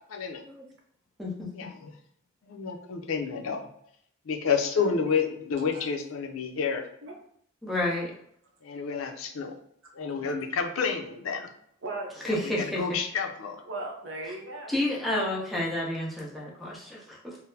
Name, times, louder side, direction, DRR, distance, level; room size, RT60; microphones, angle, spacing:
voice 1, 0.1-0.4 1.5-1.9 2.4-3.6 4.3-6.8 8.6-9.5 9.9-11.5 12.3-13.6, left 6 dB, 85° left, 4 dB, 0.5 m, -30 dB
voice 2, 4.8-5.2 5.7-5.9 7.0-7.1 11.8-12.1 13.6-14.7, right 2 dB, 65° right, 1 dB, 0.7 m, -37 dB
voice 3, 7.6-8.1 12.2-12.8 14.7-17.4, left 1 dB, ahead, -5 dB, 0.6 m, -30 dB
3.8 x 2.0 x 2.7 m, 0.69 s
head